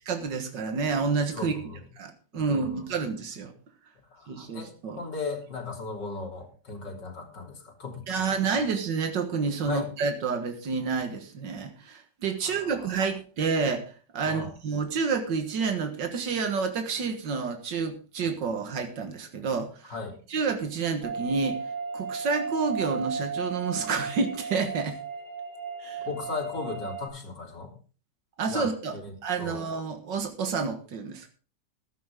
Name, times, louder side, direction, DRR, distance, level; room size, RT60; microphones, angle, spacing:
voice 1, 0.1-1.6 2.0-3.5 4.3-5.0 8.1-13.8 14.1-19.9 20.3-21.6 21.9-25.0 25.8-26.1 28.4-28.9 29.2-31.3, right 5 dB, 85° right, 6 dB, 2.1 m, -29 dB
voice 2, 1.3-1.9 2.3-2.8 4.1-8.6 9.7-9.9 12.4-13.0 14.2-14.5 19.9-20.2 26.1-27.7 28.4-29.7, left 4 dB, 80° left, 1 dB, 3.8 m, -37 dB
sound 1, 21.0-27.1, right 4 dB, 60° right, 8.6 m, -35 dB
15.0 x 12.0 x 3.6 m, 0.37 s
omnidirectional pair, 1.9 m